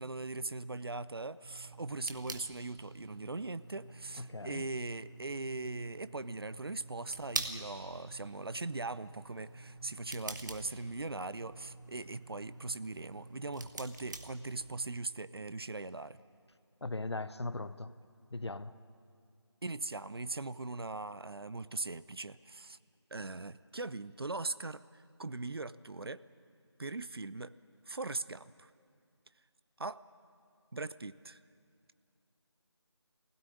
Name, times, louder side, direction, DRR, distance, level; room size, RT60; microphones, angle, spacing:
voice 1, 0.0-16.2 19.6-22.8 23.1-26.2 26.8-27.5 27.9-28.7 29.8-30.0 30.7-31.4, right 3 dB, 55° right, 0.6 m, -40 dB
sound 1, 1.4-15.0, right 2 dB, 40° right, 1.3 m, -46 dB
voice 2, 4.2-4.7 16.8-18.0 18.3-18.7, left 2 dB, 70° left, 0.9 m, -39 dB
21.0 x 16.5 x 9.7 m
figure-of-eight pair, 165°, 15 cm